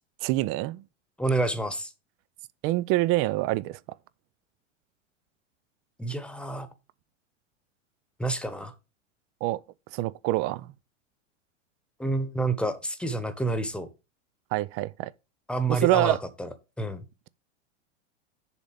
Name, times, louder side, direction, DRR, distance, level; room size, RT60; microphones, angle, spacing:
voice 1, 0.2-0.8 2.6-3.8 9.4-9.6 9.9-10.7 14.5-15.1 15.7-16.2, right 17 dB, 40° right, 0.5 m, -25 dB
voice 2, 1.2-1.9 6.0-6.7 8.2-8.7 12.0-13.9 15.5-16.5 16.8-17.0, right 2 dB, 5° left, 1.1 m, -28 dB
7.1 x 4.1 x 6.5 m
hypercardioid pair, 100°, 37 cm